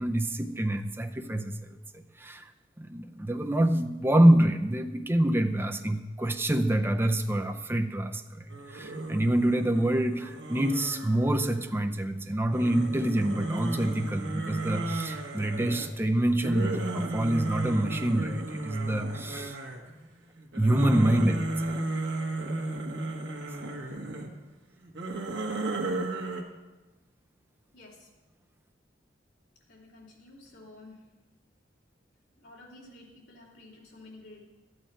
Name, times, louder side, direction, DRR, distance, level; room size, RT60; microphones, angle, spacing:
voice 1, 0.0-1.8 2.2-2.5 2.8-19.6 20.5-21.8, right 1 dB, 10° right, 6 dB, 0.5 m, -26 dB
sound 1, 8.5-11.9 12.5-20.0 20.4-24.3 24.8-26.4, right 2 dB, 85° right, 1.3 m, -34 dB
voice 2, 27.7-28.1 29.7-31.0 32.3-34.5, left 2 dB, 65° left, -4 dB, 2.7 m, -51 dB
12.5 x 9.3 x 4.5 m, 1.1 s
head